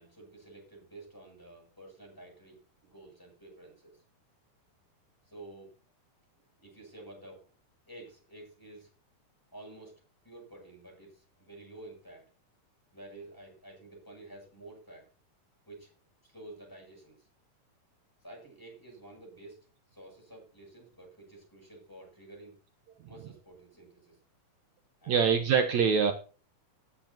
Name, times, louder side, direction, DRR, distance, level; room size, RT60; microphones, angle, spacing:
voice 1, 0.0-4.0 5.3-5.7 6.6-7.5 7.9-8.9 9.5-12.3 12.9-15.0 15.7-15.9 16.2-17.3 18.2-19.7 19.9-22.5 23.1-24.2 25.0-25.4, right 2 dB, 5° left, 0 dB, 7.8 m, -50 dB
voice 2, 25.1-26.1, right 6 dB, 65° right, 5 dB, 2.4 m, -24 dB
19.0 x 10.0 x 2.9 m, 0.35 s
omnidirectional pair, 3.6 m